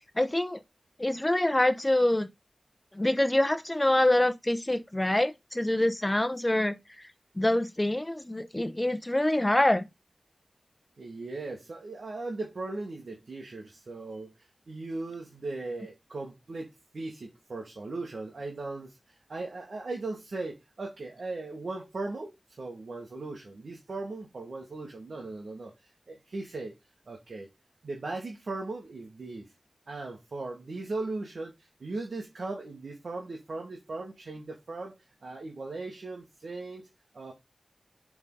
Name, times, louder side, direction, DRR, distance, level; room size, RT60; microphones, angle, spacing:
voice 1, 0.2-0.6 1.0-2.3 2.9-7.1 7.4-9.9, left 1 dB, 25° left, 0.8 m, -25 dB
voice 2, 11.0-22.3 22.6-25.7 26.1-26.7 27.1-27.5 27.8-29.5 29.9-35.0 35.2-36.8 37.1-37.3, right 3 dB, 90° right, 1.6 m, -38 dB
7.4 x 4.0 x 3.8 m
cardioid pair, 40°, 0 cm